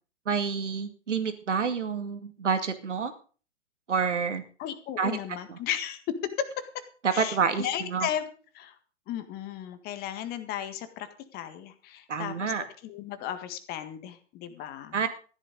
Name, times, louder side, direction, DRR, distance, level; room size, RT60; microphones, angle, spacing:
voice 1, 0.3-3.1 3.9-4.4 5.0-5.2 5.5-5.6 7.0-8.1 12.1-12.6 14.9-15.1, right 6 dB, 70° right, 9 dB, 2.3 m, -28 dB
voice 2, 4.6-6.0 6.4-6.7 7.1-8.7 9.1-12.5 12.8-15.0, left 10 dB, 25° left, 10 dB, 1.7 m, -35 dB
14.0 x 11.5 x 5.2 m, 0.40 s
figure-of-eight pair, 115°, 37 cm